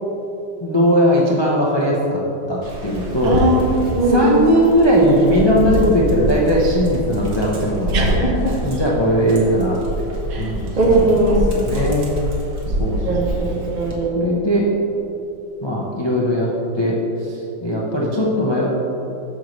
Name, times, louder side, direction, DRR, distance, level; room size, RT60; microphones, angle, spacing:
voice 1, 0.6-2.2 2.5-3.4 4.1-8.2 8.6-10.1 10.4-11.2 11.5-12.1 12.8-13.7 14.1-14.7 15.6-16.5 16.7-18.8, equal, 30° left, -5 dB, 0.4 m, -19 dB
Dog, 2.6-14.0, equal, 60° right, 1.7 m, -26 dB
voice 2, 3.2-4.5 7.9-8.5 10.3-10.5 10.8-11.7 13.0-14.3, right 2 dB, 45° right, -2 dB, 0.6 m, -19 dB
9.1 x 6.6 x 3.2 m, 2.8 s
omnidirectional pair, 2.0 m